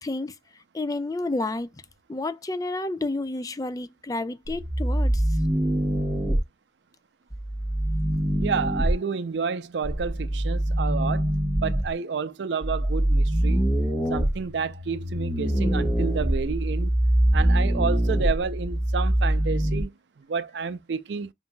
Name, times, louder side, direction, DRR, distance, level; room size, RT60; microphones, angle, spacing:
voice 1, 0.0-0.4 0.7-1.7 2.1-5.2, left 2 dB, 20° left, 0.3 m, -30 dB
sound 1, 4.5-6.4 7.3-8.9 9.8-11.9 12.6-19.8, right 1 dB, 5° left, 1.2 m, -24 dB
voice 2, 8.4-11.3 11.6-13.7 14.1-16.9 17.3-19.9 20.3-21.3, right 5 dB, 80° right, 0.5 m, -30 dB
5.3 x 2.6 x 2.2 m
head